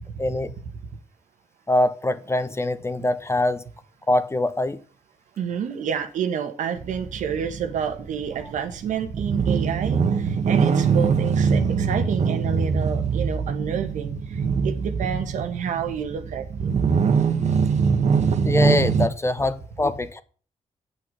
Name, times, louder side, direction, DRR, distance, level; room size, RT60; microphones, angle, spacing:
voice 1, 0.2-0.5 1.7-3.6 4.1-4.8 18.4-20.2, left 1 dB, 20° left, 1.2 m, -23 dB
voice 2, 5.4-16.7, right 8 dB, 80° right, 1.5 m, -29 dB
sound 1, 6.8-19.1, right 5 dB, 65° right, 1.4 m, -23 dB
8.4 x 6.2 x 7.9 m
cardioid pair, 70°, 13 cm